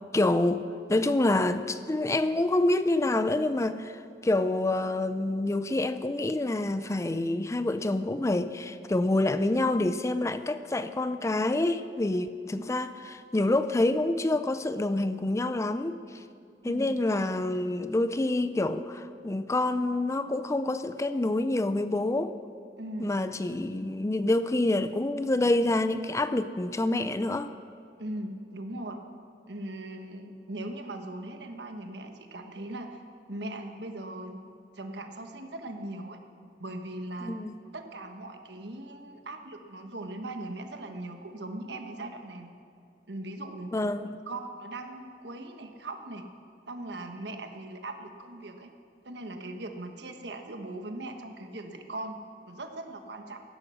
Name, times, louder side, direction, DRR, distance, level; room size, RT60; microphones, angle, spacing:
voice 1, 0.1-0.6 0.9-16.2 16.6-22.3 23.0-27.5 37.2-37.6 43.7-44.1, left 2 dB, 15° left, 12 dB, 0.4 m, -27 dB
voice 2, 16.6-16.9 22.8-23.1 28.0-29.0 29.5-33.0 33.3-34.4 34.7-36.2 36.6-37.4 37.7-42.5 43.1-43.8 44.3-46.3 46.7-48.7 49.0-52.2 52.5-53.4, right 1 dB, 75° right, 5 dB, 1.4 m, -39 dB
15.5 x 11.5 x 6.4 m, 2.5 s
head